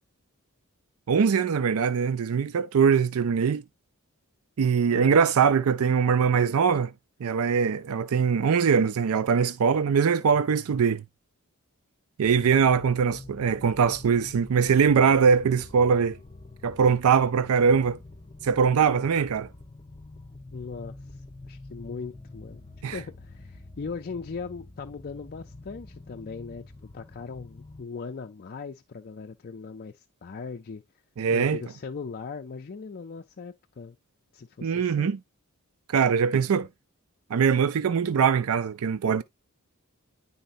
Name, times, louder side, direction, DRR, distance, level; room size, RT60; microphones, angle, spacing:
voice 1, 1.1-3.6 4.6-6.9 7.2-11.0 12.2-16.2 16.6-18.0 18.4-19.5 22.8-23.0 31.2-31.6 34.6-35.2 35.9-36.7 37.3-39.2, right 6 dB, 70° right, 0.4 m, -22 dB
voice 2, 4.9-5.2 18.9-19.0 20.5-26.6 26.9-30.8 31.3-34.0 34.3-35.1, left 5 dB, 45° left, 0.5 m, -39 dB
sound 1, 12.2-27.8, left 2 dB, 25° left, 0.9 m, -46 dB
10.0 x 4.2 x 2.6 m
head